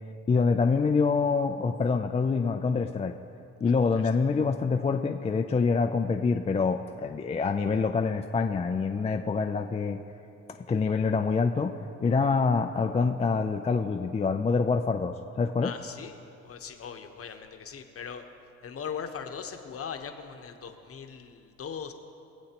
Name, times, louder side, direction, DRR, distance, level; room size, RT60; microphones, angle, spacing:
voice 1, 0.3-3.1 3.6-10.0 10.7-15.7, left 4 dB, 20° left, 4 dB, 0.4 m, -26 dB
voice 2, 3.7-4.1 15.6-16.2 16.4-18.3 18.6-21.9, left 7 dB, 50° left, 6 dB, 1.0 m, -40 dB
22.0 x 7.9 x 2.9 m, 2.7 s
cardioid pair, 90°, 30 cm